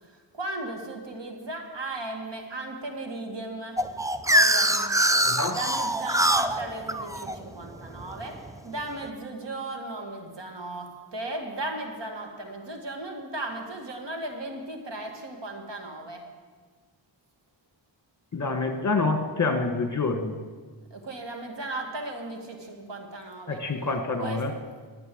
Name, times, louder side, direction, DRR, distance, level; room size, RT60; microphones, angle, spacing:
voice 1, 0.0-3.8 4.3-4.9 5.5-8.4 8.6-16.2 20.9-23.6 24.2-24.4, right 2 dB, 65° right, 3 dB, 2.2 m, -36 dB
sound 1, 3.8-8.6, right 1 dB, 10° right, 0.5 m, -24 dB
voice 2, 5.2-5.6 18.3-20.4 23.5-24.5, left 3 dB, 40° left, 6 dB, 1.4 m, -27 dB
12.0 x 9.0 x 7.8 m, 1.5 s
wide cardioid pair, 80°, 45 cm